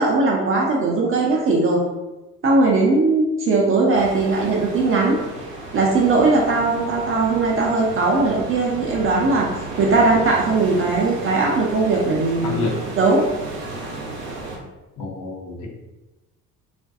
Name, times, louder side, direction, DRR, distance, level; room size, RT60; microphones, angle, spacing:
voice 1, 0.0-1.8 2.4-5.2 5.7-9.5 9.8-12.7 13.0-13.2, right 3 dB, 30° right, -2 dB, 0.4 m, -19 dB
sound 1, 3.9-14.6, right 2 dB, 85° right, 0.6 m, -34 dB
voice 2, 12.4-12.8 15.0-15.7, left 4 dB, 40° left, 0 dB, 0.6 m, -28 dB
2.4 x 2.2 x 2.5 m, 1.1 s
figure-of-eight pair, 55°, 48 cm